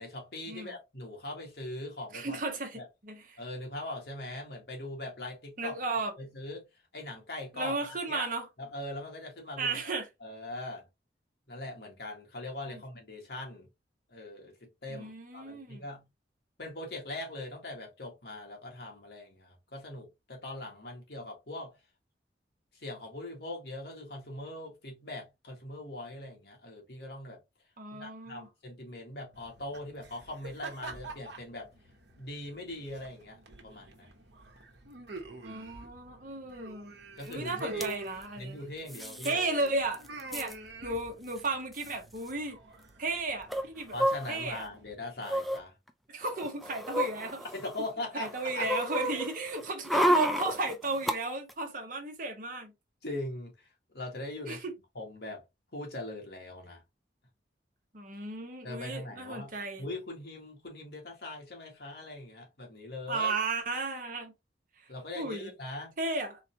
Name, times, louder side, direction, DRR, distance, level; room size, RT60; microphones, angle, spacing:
voice 1, 0.0-2.5 2.7-2.9 3.4-5.8 6.2-6.6 6.9-8.3 8.6-9.7 10.2-10.9 11.5-13.7 14.1-16.0 16.6-21.8 22.7-27.4 27.9-31.7 32.2-34.3 36.3-36.4 37.2-37.8 38.3-39.4 43.9-45.7 47.5-48.7 49.1-49.2 53.0-54.6 54.9-55.4 55.7-56.8 58.6-63.3 64.9-66.0, left 1 dB, 65° left, 1.8 m, -41 dB
voice 2, 2.1-3.4 5.6-6.1 7.5-8.5 9.6-10.1 12.7-12.8 14.9-15.8 27.8-28.5 35.4-36.9 37.3-38.6 39.2-40.0 40.3-40.6 40.8-42.6 43.0-43.9 44.3-44.6 46.1-47.4 48.1-52.7 54.5-54.7 57.9-59.8 63.1-64.3 65.1-65.5 66.0-66.4, right 3 dB, 50° right, 1.1 m, -34 dB
sound 1, 29.3-44.9, right 3 dB, 70° right, 1.0 m, -47 dB
sound 2, 37.3-37.4 37.6-37.9 38.9-39.3 39.7-39.8 39.9-40.5 41.4-41.5 41.7-41.9 43.5-44.6 45.2-45.6 46.2-47.9 48.2-51.2 51.5-51.6, equal, ahead, 0.4 m, -31 dB
4.0 x 3.2 x 2.8 m
head